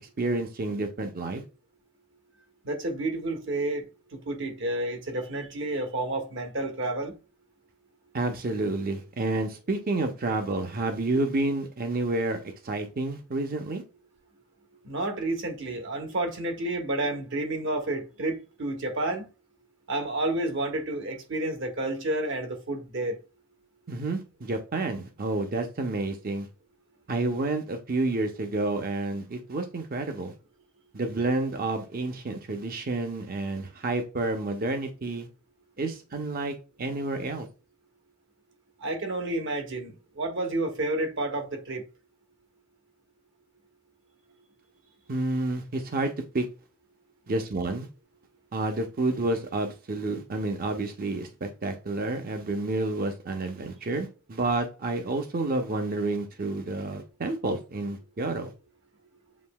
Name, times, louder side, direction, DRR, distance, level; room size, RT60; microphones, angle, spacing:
voice 1, 0.2-1.4 8.1-13.8 23.9-26.5 27.1-30.3 30.9-35.3 35.8-37.5 45.1-46.5 47.3-47.9 48.5-58.5, right 2 dB, 45° right, 0.7 m, -29 dB
voice 2, 2.6-7.1 14.8-19.3 19.9-23.2 38.8-41.8, right 2 dB, 60° right, 1.1 m, -30 dB
7.3 x 2.7 x 2.2 m
head